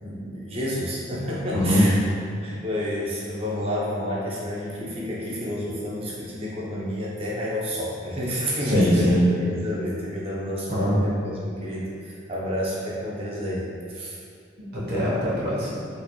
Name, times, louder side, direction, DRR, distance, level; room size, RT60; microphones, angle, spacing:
voice 1, 0.0-2.0 2.4-14.2, equal, 30° right, -6 dB, 0.6 m, -30 dB
voice 2, 1.5-1.9 8.6-9.3 10.7-11.0 14.6-15.7, equal, 55° right, -8 dB, 1.0 m, -22 dB
3.9 x 2.9 x 2.3 m, 2.3 s
head